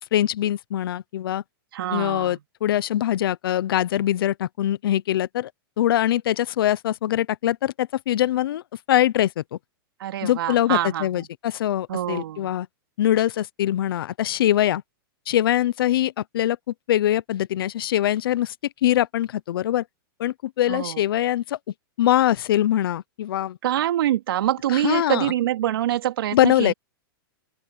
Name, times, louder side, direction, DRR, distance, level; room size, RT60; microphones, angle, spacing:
voice 1, 0.1-1.4 1.9-5.5 5.8-8.6 8.9-9.6 10.2-12.7 13.0-14.8 15.3-18.5 18.8-19.8 20.2-21.6 22.0-23.6 24.7-25.3 26.3-26.7, left 12 dB, 70° left, 0.9 m, -23 dB
voice 2, 1.7-2.4 10.0-11.3 11.9-12.5 20.7-21.0 23.6-26.7, right 12 dB, 75° right, 3.0 m, -25 dB
open air
hypercardioid pair, 130°, 12 cm